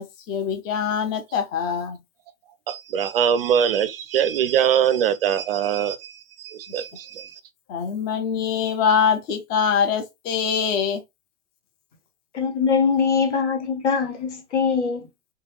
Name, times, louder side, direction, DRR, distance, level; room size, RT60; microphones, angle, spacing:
voice 1, 0.0-2.0 7.7-11.0, left 7 dB, 25° left, 0.5 m, -23 dB
voice 2, 2.7-7.3, right 9 dB, 50° right, 0.4 m, -22 dB
voice 3, 12.3-15.1, left 5 dB, 65° left, 1.2 m, -22 dB
3.2 x 2.2 x 3.0 m
figure-of-eight pair, 100°, 39 cm